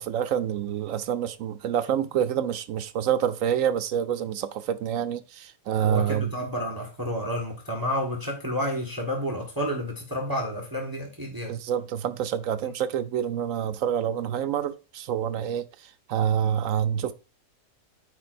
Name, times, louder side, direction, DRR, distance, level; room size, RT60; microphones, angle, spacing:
voice 1, 0.0-6.3 11.5-15.7 16.1-17.1, right 9 dB, 70° right, 0.9 m, -27 dB
voice 2, 5.8-11.5, equal, 15° right, 1.3 m, -30 dB
13.5 x 4.7 x 2.5 m
omnidirectional pair, 1.6 m